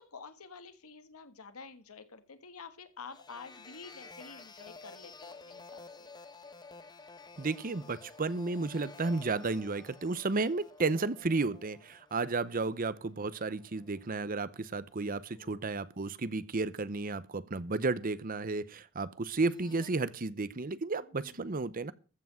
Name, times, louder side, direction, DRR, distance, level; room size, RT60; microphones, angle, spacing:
voice 1, 0.1-6.1 12.5-12.7 15.4-15.6 21.1-21.3, left 5 dB, 90° left, 1.5 m, -49 dB
sound 1, 3.0-14.5 14.8-15.2 19.3-19.9, left 4 dB, 20° left, 1.0 m, -53 dB
voice 2, 7.4-21.9, right 3 dB, 40° right, 0.7 m, -33 dB
14.5 x 6.1 x 7.4 m
head